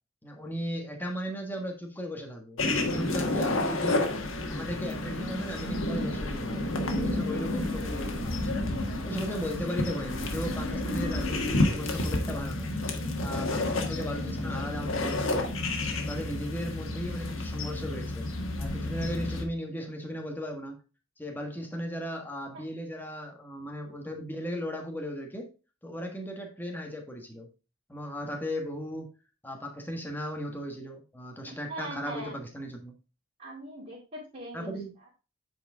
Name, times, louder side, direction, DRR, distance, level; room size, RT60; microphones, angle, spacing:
voice 1, 0.2-4.1 4.5-8.5 9.0-12.7 13.2-15.5 16.0-18.3 18.6-20.8 21.2-25.5 25.8-27.5 27.9-29.1 29.4-32.9 34.5-34.9, equal, 10° left, 3 dB, 1.4 m, -36 dB
sound 1, 2.6-19.5, left 2 dB, 90° left, 1.5 m, -30 dB
voice 2, 31.7-32.3 33.4-34.8, right 1 dB, 35° right, -7 dB, 2.8 m, -40 dB
8.9 x 4.6 x 3.5 m, 0.32 s
head